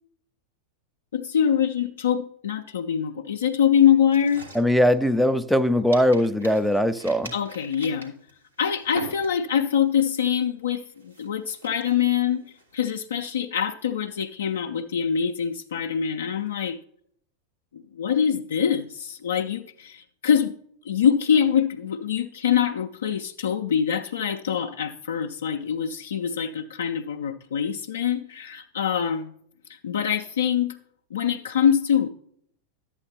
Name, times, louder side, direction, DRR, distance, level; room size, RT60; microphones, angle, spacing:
voice 1, 1.1-4.5 7.3-8.2 8.6-12.4 12.7-16.8 17.7-20.6 20.8-29.3 29.7-30.8 31.1-32.1, left 8 dB, 65° left, 0.4 m, -24 dB
sound 1, 4.1-5.6 5.9-9.7 10.1-10.4 10.9-13.2, right 2 dB, 90° right, 1.8 m, -43 dB
voice 2, 4.6-7.3, equal, ahead, 0.4 m, -20 dB
11.0 x 8.5 x 2.8 m
figure-of-eight pair, 90°, 0 cm